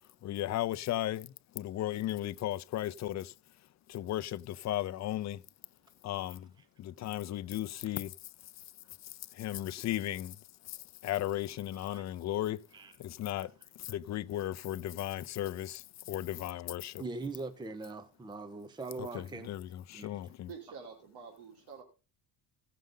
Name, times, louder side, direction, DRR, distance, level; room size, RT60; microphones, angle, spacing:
voice 1, 0.2-3.3 3.9-5.4 6.0-6.5 6.8-8.1 9.3-10.4 10.7-10.8 11.0-12.6 13.0-13.5 13.8-17.0 19.0-20.5, left 13 dB, 45° left, 0.5 m, -35 dB
voice 2, 11.7-12.0 12.7-12.9 13.4-13.5 17.0-19.5 19.9-20.3, right 3 dB, 10° right, 0.7 m, -42 dB
voice 3, 20.5-21.8, right 6 dB, 75° right, 2.9 m, -48 dB
16.0 x 6.7 x 3.8 m
cardioid pair, 145°, 40 cm